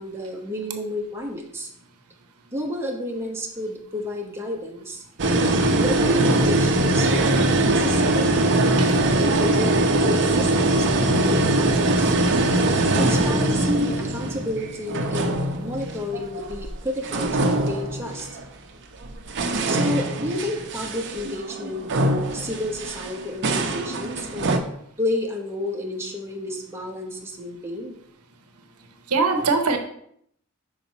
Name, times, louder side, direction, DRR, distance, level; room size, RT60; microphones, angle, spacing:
voice 1, 0.0-1.7 2.5-5.0 5.4-12.1 12.9-18.3 19.6-24.6 25.0-28.0, left 1 dB, 10° right, -1 dB, 1.0 m, -31 dB
sound 1, 5.2-16.7 17.0-18.4 19.0-24.6, right 1 dB, 55° right, 0.7 m, -22 dB
voice 2, 29.1-29.8, right 4 dB, 90° right, 5 dB, 0.9 m, -22 dB
5.9 x 4.9 x 4.1 m, 0.69 s
head